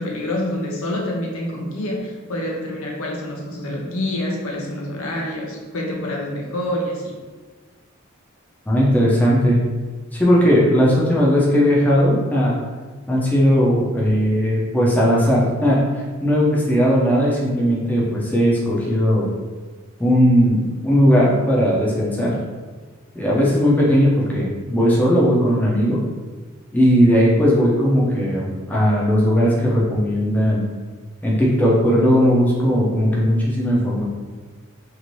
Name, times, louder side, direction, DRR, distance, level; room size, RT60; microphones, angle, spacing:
voice 1, 0.0-7.2, left 1 dB, 85° left, -1 dB, 0.6 m, -27 dB
voice 2, 8.7-9.6 10.1-12.5 13.1-19.3 20.0-22.3 23.2-26.0 26.7-30.6 31.2-34.0, equal, 10° left, -5 dB, 0.5 m, -17 dB
2.7 x 2.5 x 3.0 m, 1.4 s
head